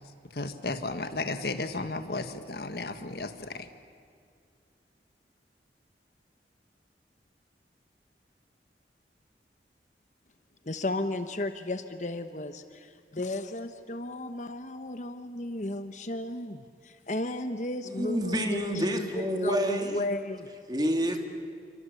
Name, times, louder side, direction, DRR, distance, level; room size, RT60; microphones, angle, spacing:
voice 1, 0.3-3.7, left 2 dB, 65° left, 9 dB, 1.7 m, -34 dB
voice 2, 10.6-20.5, left 1 dB, 45° left, 9 dB, 1.1 m, -34 dB
voice 3, 17.9-20.0 20.7-21.2, equal, 25° right, 4 dB, 2.5 m, -28 dB
28.5 x 24.5 x 8.5 m, 2.3 s
head